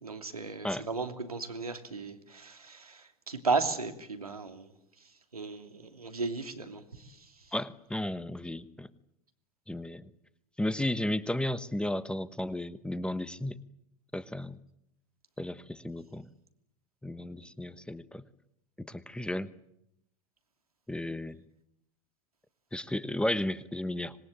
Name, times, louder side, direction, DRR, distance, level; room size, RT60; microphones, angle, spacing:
voice 1, 0.0-4.7 5.0-7.5, right 4 dB, 90° right, 7 dB, 2.9 m, -35 dB
voice 2, 7.5-8.9 9.7-10.1 10.6-13.6 14.1-14.5 15.4-16.3 17.0-18.2 18.8-19.5 20.9-21.4 22.7-24.2, left 1 dB, 5° left, 16 dB, 1.1 m, -34 dB
25.5 x 21.0 x 9.1 m, 0.80 s
figure-of-eight pair, 85°, 18 cm